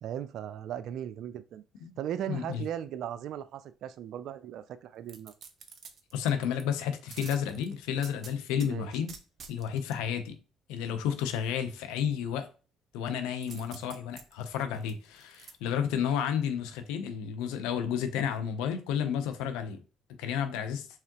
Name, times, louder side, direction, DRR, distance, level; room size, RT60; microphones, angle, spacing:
voice 1, 0.0-1.6 2.0-5.3 8.7-8.9, right 10 dB, 70° right, 0.4 m, -37 dB
voice 2, 2.3-2.6 6.1-9.1 9.5-10.4 10.7-12.5 12.9-19.8 20.2-20.9, left 8 dB, 85° left, 0.7 m, -31 dB
sound 1, 5.1-6.6 7.1-8.7 9.1-10.0 13.4-15.5 16.0-16.1, right 6 dB, 55° right, 0.8 m, -48 dB
4.8 x 3.5 x 3.0 m
supercardioid pair, 70°, 0 cm